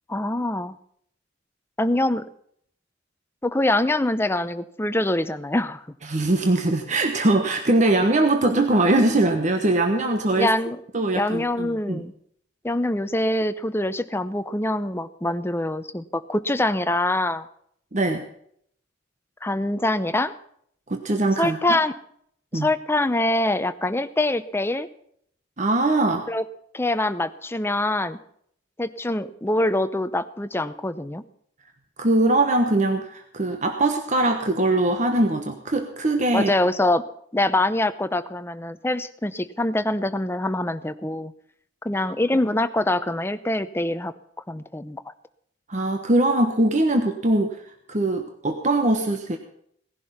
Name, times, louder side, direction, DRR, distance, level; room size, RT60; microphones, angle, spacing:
voice 1, 0.1-0.7 1.8-2.2 3.4-5.8 10.3-10.8 11.1-12.1 12.6-17.4 19.4-20.3 21.4-21.9 22.5-24.9 26.3-26.4 26.7-28.2 28.8-31.2 36.3-37.0 37.3-41.3 41.8-44.1 44.5-45.0, left 1 dB, 15° left, 11 dB, 0.7 m, -24 dB
voice 2, 6.1-10.5 10.9-12.0 17.9-18.2 20.9-21.8 22.5-22.7 25.6-26.2 32.0-36.5 45.7-47.6 47.9-49.4, right 2 dB, 40° right, 5 dB, 1.2 m, -21 dB
18.0 x 11.0 x 5.8 m, 0.67 s
head